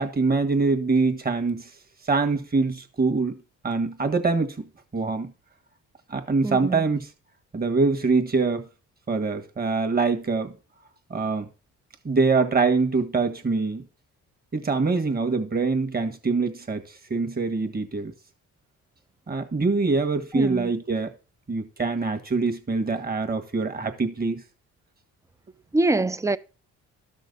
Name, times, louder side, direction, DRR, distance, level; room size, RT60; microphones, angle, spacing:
voice 1, 0.0-1.7 2.0-4.6 4.9-5.3 6.1-7.1 7.5-8.7 9.1-10.5 11.1-11.5 12.0-13.8 14.5-18.1 19.3-21.1 21.5-24.4, right 4 dB, 30° right, 1.7 m, -24 dB
voice 2, 6.4-6.8 20.4-20.7 25.7-26.4, right 2 dB, 10° right, 0.5 m, -24 dB
12.5 x 6.4 x 4.0 m
cardioid pair, 90°, 30 cm